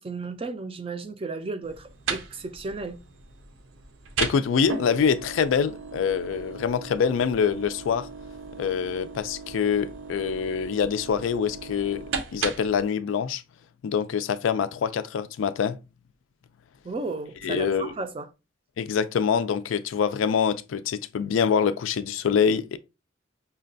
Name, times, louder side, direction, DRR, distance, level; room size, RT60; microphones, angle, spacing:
voice 1, 0.0-3.0 16.8-18.3, right 3 dB, 30° right, 0.4 m, -34 dB
sound 1, 1.6-12.8, right 5 dB, 85° right, 0.6 m, -36 dB
voice 2, 4.2-8.1 8.6-12.0 12.3-13.4 13.8-15.8 17.4-17.9 18.8-22.8, left 6 dB, 85° left, 0.3 m, -25 dB
5.4 x 2.2 x 2.5 m
head